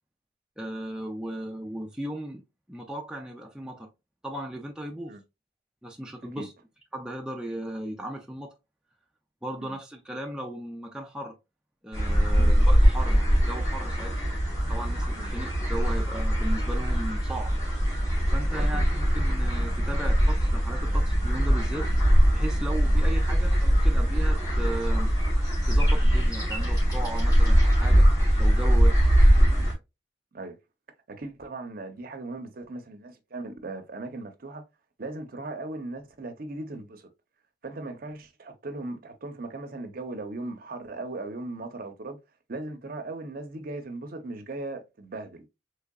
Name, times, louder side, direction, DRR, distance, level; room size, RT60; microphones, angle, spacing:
voice 1, 0.6-3.9 4.2-5.2 5.8-6.5 6.9-8.5 9.4-11.3 11.8-14.1 14.7-17.5 18.3-21.9 22.3-25.1 25.7-28.1 28.4-29.2, right 1 dB, 5° right, 0.3 m, -36 dB
sound 1, 11.9-29.7, equal, 20° left, 2.1 m, -22 dB
voice 2, 31.1-34.6 35.0-37.1 37.6-42.2 42.5-45.4, right 2 dB, 45° right, 0.6 m, -38 dB
3.7 x 3.2 x 2.2 m
head